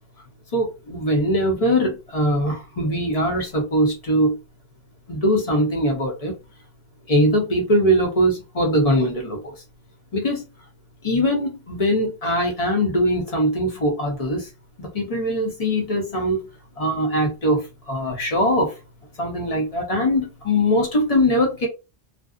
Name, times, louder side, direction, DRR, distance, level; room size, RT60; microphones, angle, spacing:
voice 1, 0.5-4.4 5.1-6.3 7.1-9.4 10.1-10.4 11.0-14.5 14.8-16.4 16.8-18.7 19.2-21.7, equal, 35° left, 0.8 m, -21 dB
2.5 x 2.0 x 2.4 m
omnidirectional pair, 1.2 m